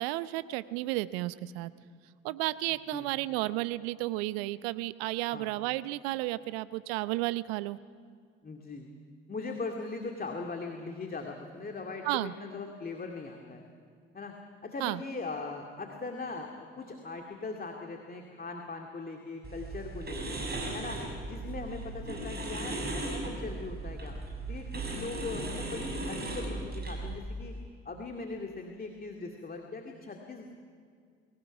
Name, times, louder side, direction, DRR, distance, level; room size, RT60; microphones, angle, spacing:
voice 1, 0.0-1.7 2.2-7.8 12.0-12.3 14.8-15.0, right 18 dB, 70° right, 16 dB, 0.7 m, -32 dB
voice 2, 8.4-8.9 9.3-13.7 14.1-14.3 14.6-20.4 20.7-24.1 24.5-27.6 27.8-30.4, left 3 dB, 30° left, 2 dB, 2.3 m, -40 dB
sound 1, 19.4-27.1, right 2 dB, 30° right, 7.3 m, -37 dB
23.0 x 16.5 x 9.0 m, 2.1 s
figure-of-eight pair, 50°, 32 cm